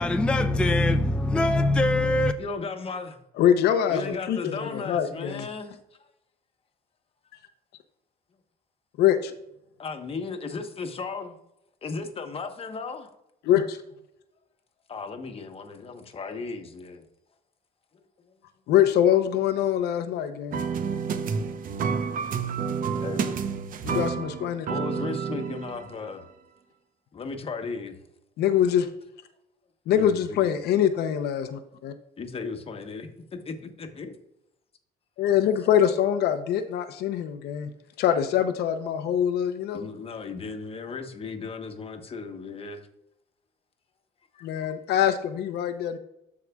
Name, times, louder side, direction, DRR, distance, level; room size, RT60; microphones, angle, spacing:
voice 1, 0.0-2.3, left 2 dB, 5° left, 0.4 m, -22 dB
voice 2, 2.4-3.2 3.9-5.8 9.8-11.3 11.8-13.1 14.9-17.0 23.0-23.4 24.7-26.2 27.1-27.9 29.9-30.6 32.2-34.1 39.7-42.8 44.4-44.5, left 4 dB, 35° left, 1.1 m, -35 dB
voice 3, 3.4-5.5 9.0-9.3 13.4-13.8 18.7-20.6 23.8-24.7 28.4-28.9 29.9-31.9 35.2-37.7 38.0-39.9 44.4-46.0, left 10 dB, 75° left, 0.7 m, -24 dB
sound 1, 20.5-26.1, right 6 dB, 55° right, 0.8 m, -29 dB
13.5 x 4.8 x 2.3 m
cardioid pair, 110°, 17 cm